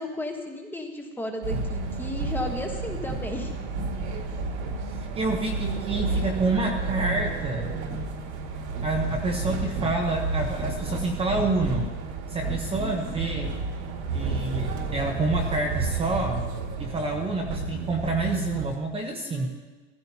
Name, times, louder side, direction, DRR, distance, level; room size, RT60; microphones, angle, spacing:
voice 1, 0.0-3.5 12.8-13.2 19.2-19.5, left 1 dB, 5° left, 2 dB, 1.2 m, -34 dB
sound 1, 1.4-18.8, right 3 dB, 65° right, 2.1 m, -31 dB
voice 2, 5.1-7.7 8.8-11.9 12.3-13.5 14.1-16.4 16.8-19.5, right 2 dB, 15° right, 1 dB, 0.9 m, -28 dB
15.5 x 15.0 x 2.8 m, 1.3 s
supercardioid pair, 150°, 36 cm